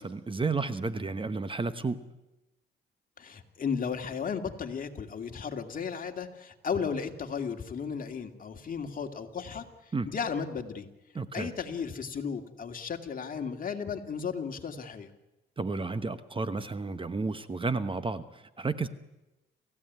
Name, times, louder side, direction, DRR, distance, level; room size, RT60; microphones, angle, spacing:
voice 1, 0.0-2.0 9.9-10.1 11.1-11.5 15.6-18.9, right 3 dB, 25° right, 1.1 m, -32 dB
voice 2, 3.2-9.7 10.1-10.9 11.3-15.1, left 6 dB, 45° left, 2.4 m, -34 dB
28.0 x 16.0 x 9.5 m
cardioid pair, 90°, 20 cm